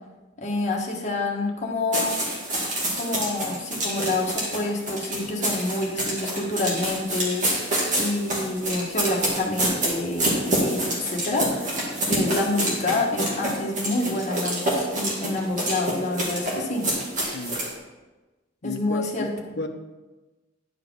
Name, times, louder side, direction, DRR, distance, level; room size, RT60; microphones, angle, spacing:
voice 1, 0.4-2.1 2.9-11.8 12.0-16.8 18.6-19.6, left 2 dB, 40° left, -2 dB, 1.4 m, -28 dB
sound 1, 1.9-17.7, right 1 dB, 45° right, 2.2 m, -27 dB
voice 2, 18.6-19.3 19.6-19.7, left 3 dB, 65° left, 7 dB, 0.7 m, -33 dB
10.0 x 4.9 x 4.6 m, 1.2 s
head